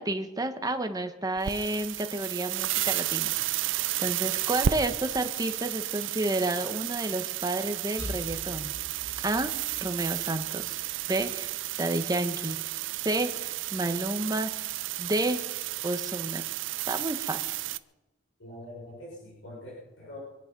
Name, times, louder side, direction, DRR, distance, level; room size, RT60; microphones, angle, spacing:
voice 1, 0.0-3.3 4.0-8.7 9.2-9.5 9.8-10.8 11.1-11.5 11.8-12.6 13.0-15.4 15.8-16.4 16.9-17.6, right 2 dB, 20° right, 7 dB, 1.3 m, -30 dB
sound 1, 1.4-17.8, right 12 dB, 80° right, 0.6 m, -32 dB
sound 2, 8.0-11.7, left 1 dB, 40° left, 5.1 m, -44 dB
voice 2, 18.4-20.2, left 1 dB, 85° left, -5 dB, 6.3 m, -44 dB
25.0 x 10.5 x 5.4 m, 1.1 s
head